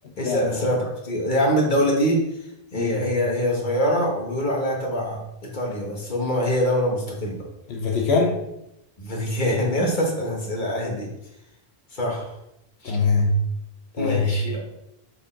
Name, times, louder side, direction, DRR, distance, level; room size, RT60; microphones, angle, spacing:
voice 1, 0.2-2.2 2.7-7.4 9.0-11.1 11.9-12.3 12.8-12.9 14.0-14.7, equal, 50° left, -2 dB, 1.7 m, -24 dB
voice 2, 7.7-8.4 12.8-13.4 14.0-14.3, left 4 dB, 90° left, -1 dB, 1.2 m, -22 dB
6.7 x 4.2 x 3.8 m, 0.84 s
omnidirectional pair, 1.0 m